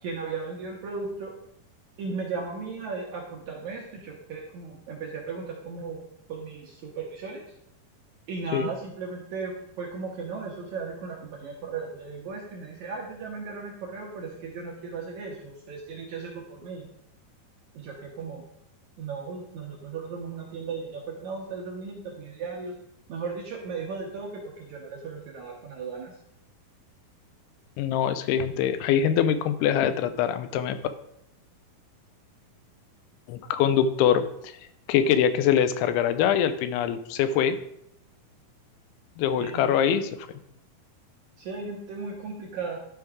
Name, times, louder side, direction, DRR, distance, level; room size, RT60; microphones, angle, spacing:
voice 1, 0.0-1.3 2.0-6.0 6.3-7.4 8.3-16.9 17.7-18.4 19.0-22.7 23.1-26.1 39.4-39.7 41.4-42.8, right 4 dB, 70° right, -1 dB, 1.8 m, -36 dB
voice 2, 27.8-30.8 33.3-34.5 34.9-37.6 39.2-40.1, left 8 dB, 90° left, 11 dB, 2.6 m, -23 dB
12.0 x 4.6 x 3.6 m, 0.76 s
omnidirectional pair, 4.5 m